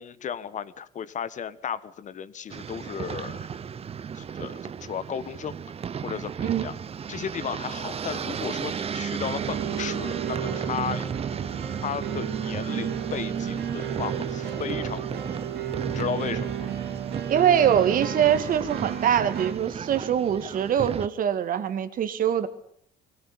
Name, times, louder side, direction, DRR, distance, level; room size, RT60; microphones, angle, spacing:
voice 1, 0.0-3.5 4.1-5.6 6.0-6.7 7.1-11.1 11.8-15.2 15.9-16.7, left 8 dB, 45° left, 15 dB, 1.4 m, -34 dB
sound 1, 2.5-21.1, right 7 dB, 35° right, 0.9 m, -34 dB
sound 2, 9.4-19.5, right 9 dB, 70° right, 3.3 m, -33 dB
voice 2, 17.3-22.5, right 9 dB, 55° right, 11 dB, 2.1 m, -23 dB
22.0 x 17.5 x 8.7 m, 0.66 s
cardioid pair, 110°, 17 cm